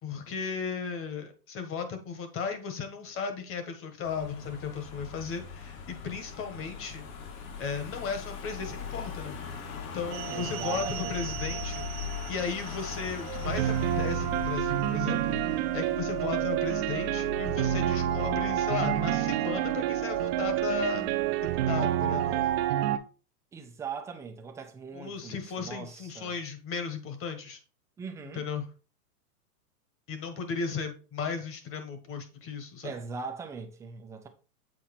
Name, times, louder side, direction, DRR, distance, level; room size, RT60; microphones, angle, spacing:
voice 1, 0.0-7.1 7.6-9.4 9.9-21.1 21.7-22.4 24.9-27.6 28.3-28.7 30.1-32.9, left 6 dB, 25° left, 1.4 m, -35 dB
Car passing by / Engine, 4.0-22.7, left 6 dB, 60° left, 2.0 m, -40 dB
sound 1, 10.1-23.0, right 13 dB, 40° right, 0.7 m, -29 dB
voice 2, 10.3-11.4 23.5-26.4 28.0-28.4 32.8-34.3, right 5 dB, 5° right, 0.4 m, -40 dB
7.7 x 4.1 x 4.2 m
hypercardioid pair, 130°, 47 cm